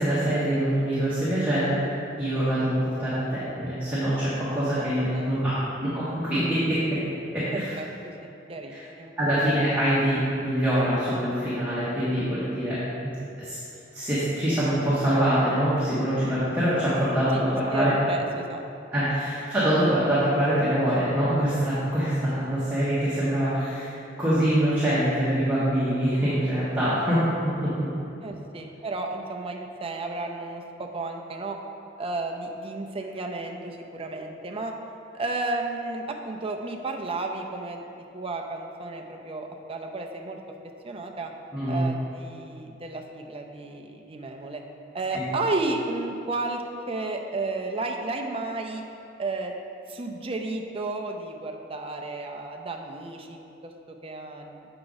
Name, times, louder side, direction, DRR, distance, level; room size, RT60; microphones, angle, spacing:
voice 1, 0.0-1.8 2.2-6.8 7.3-7.6 8.7-8.8 9.2-13.1 13.4-13.6 13.9-17.9 18.9-23.9 24.2-27.9 41.5-41.8 45.1-45.2, right 1 dB, 10° right, -12 dB, 1.3 m, -24 dB
voice 2, 5.1-5.4 7.5-9.1 17.3-18.6 19.0-19.1 28.2-31.6 32.0-34.7 35.1-37.8 38.1-40.4 40.8-41.3 41.7-44.6 44.9-48.8 49.2-49.5 49.9-54.7, right 2 dB, 30° right, 2 dB, 0.5 m, -33 dB
7.8 x 4.8 x 4.0 m, 2.8 s
head